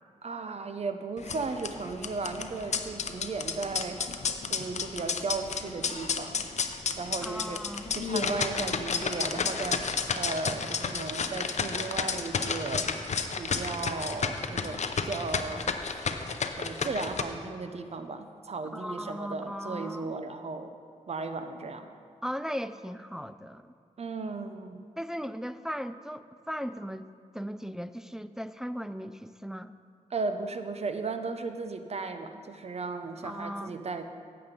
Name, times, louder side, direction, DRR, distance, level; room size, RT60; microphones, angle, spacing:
voice 1, 0.2-4.0 4.5-6.5 7.0-7.6 7.9-12.9 13.4-16.0 16.6-20.8 21.1-21.9 24.0-24.8 30.1-34.0, right 4 dB, 55° right, 8 dB, 0.7 m, -35 dB
sound 1, 1.2-17.2, left 5 dB, 60° left, 0.6 m, -32 dB
voice 2, 7.3-8.0 18.7-20.2 22.2-23.7 25.0-27.1 27.3-29.7 33.2-33.8, equal, 5° right, 11 dB, 0.3 m, -37 dB
9.5 x 7.8 x 5.2 m, 2.3 s
cardioid pair, 65°, 13 cm